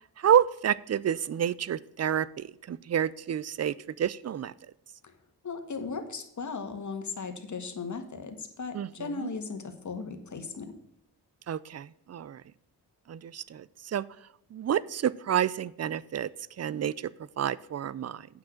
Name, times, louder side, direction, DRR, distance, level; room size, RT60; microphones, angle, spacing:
voice 1, 0.0-4.5 8.7-9.3 11.5-12.4 13.1-14.0 14.5-16.3 16.6-17.1 17.4-18.3, right 9 dB, 45° right, 20 dB, 0.5 m, -29 dB
voice 2, 5.4-10.7, left 4 dB, 50° left, 6 dB, 1.7 m, -37 dB
8.7 x 6.1 x 6.4 m, 0.81 s
cardioid pair, 80°, 37 cm